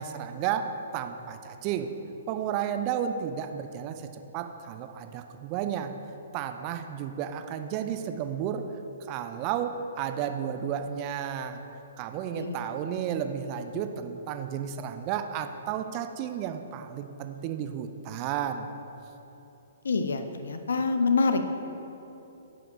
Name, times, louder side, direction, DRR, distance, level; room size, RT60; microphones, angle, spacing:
voice 1, 0.0-1.9 2.3-4.1 4.3-5.9 6.3-8.7 9.1-11.6 12.0-18.8, right 9 dB, 30° right, 8 dB, 0.5 m, -32 dB
voice 2, 19.8-21.5, left 4 dB, 65° left, 7 dB, 0.7 m, -26 dB
9.4 x 5.9 x 5.1 m, 3.0 s
figure-of-eight pair, 120°, 0 cm